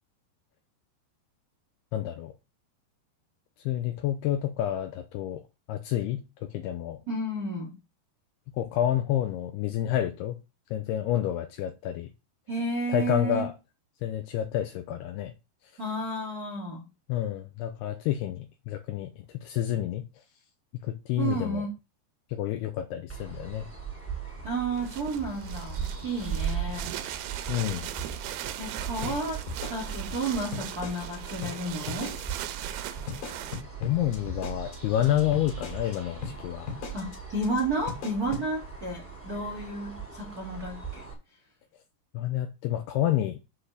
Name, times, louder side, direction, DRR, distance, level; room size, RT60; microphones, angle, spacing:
voice 1, 1.9-2.3 3.6-5.4 5.7-7.0 8.6-10.4 10.7-12.1 12.9-13.5 14.0-15.3 17.1-20.1 20.8-21.6 22.3-23.7 27.5-27.9 33.8-36.7 42.1-43.4, left 12 dB, 85° left, 2.4 m, -29 dB
voice 2, 7.1-7.7 12.5-13.5 15.8-16.8 21.2-21.7 24.4-26.9 28.6-29.4 29.7-32.1 36.9-41.0, right 2 dB, 35° right, 1.4 m, -32 dB
sound 1, 23.1-41.1, right 6 dB, 5° right, 1.7 m, -39 dB
sound 2, 24.7-33.6, right 13 dB, 85° right, 2.7 m, -39 dB
sound 3, 29.0-31.2 31.4-31.6 31.9-32.4 32.6-32.8 33.1-36.0 36.2-36.4 36.7-37.2 37.4-37.6 37.9-38.5, left 5 dB, 60° left, 3.7 m, -37 dB
7.7 x 4.3 x 6.6 m
omnidirectional pair, 5.1 m